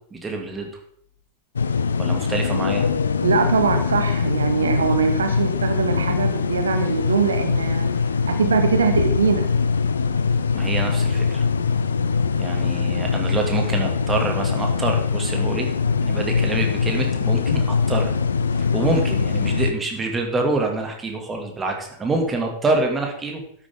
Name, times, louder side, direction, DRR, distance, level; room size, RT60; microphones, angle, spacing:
voice 1, 0.1-0.7 2.0-2.9 10.5-11.4 12.4-15.7 16.0-18.1 18.6-23.4, right 3 dB, 15° right, 2 dB, 2.5 m, -26 dB
sound 1, 1.6-19.7, left 5 dB, 70° left, 0.7 m, -22 dB
voice 2, 3.2-7.9 8.3-9.5, right 5 dB, 70° right, 7 dB, 1.1 m, -22 dB
12.5 x 9.9 x 3.8 m, 0.68 s
figure-of-eight pair, 90°, 0 cm